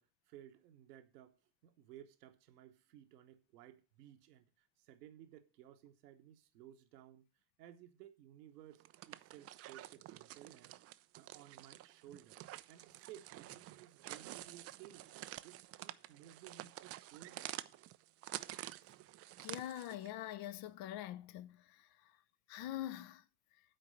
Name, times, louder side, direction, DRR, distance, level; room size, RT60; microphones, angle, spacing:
voice 1, 0.0-7.3 7.6-12.4 12.7-15.1 15.4-17.5, right 11 dB, 70° right, 1.2 m, -58 dB
sound 1, 8.7-20.1, right 15 dB, 35° right, 0.4 m, -49 dB
voice 2, 19.4-21.9 22.5-23.2, left 13 dB, 50° left, 0.7 m, -44 dB
9.1 x 4.7 x 7.5 m
figure-of-eight pair, 60°, 49 cm